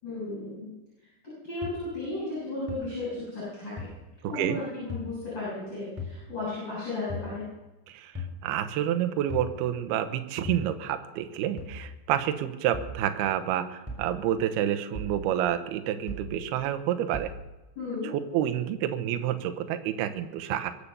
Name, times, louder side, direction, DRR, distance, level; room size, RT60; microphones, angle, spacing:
voice 1, 0.0-0.7 1.4-3.9 4.3-7.4 17.8-18.1, left 2 dB, 25° left, -8 dB, 7.8 m, -34 dB
sound 1, 1.6-1.7 2.7-2.8 3.8-3.9 4.9-5.1 6.0-6.1 7.1-7.3 8.1-8.4 9.3-9.5 10.4-10.7 11.6-11.8 12.7-13.0 13.9-14.1 14.9-15.2 16.1-16.3 17.1-17.3, left 3 dB, 5° right, 3.6 m, -36 dB
voice 2, 4.2-4.6 7.9-17.3 18.1-20.7, right 11 dB, 75° right, 8 dB, 2.6 m, -29 dB
23.0 x 8.5 x 6.8 m, 1.1 s
omnidirectional pair, 5.3 m